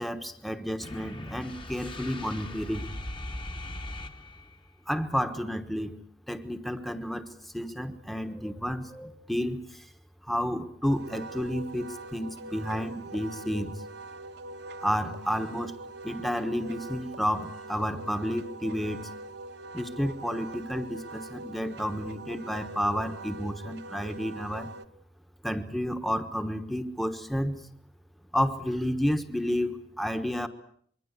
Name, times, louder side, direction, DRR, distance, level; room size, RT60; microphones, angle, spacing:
voice 1, 0.0-2.9 4.9-6.0 6.3-9.9 10.2-13.7 14.8-15.7 16.0-19.1 19.7-24.7 25.4-27.6 28.3-30.5, equal, ahead, 9 dB, 1.2 m, -31 dB
sound 1, 0.8-4.7, left 1 dB, 25° left, 1.6 m, -39 dB
Wind instrument woodwind instrument, 10.8-24.9, right 2 dB, 65° right, 1.2 m, -43 dB
25.5 x 23.0 x 8.3 m, 0.63 s
head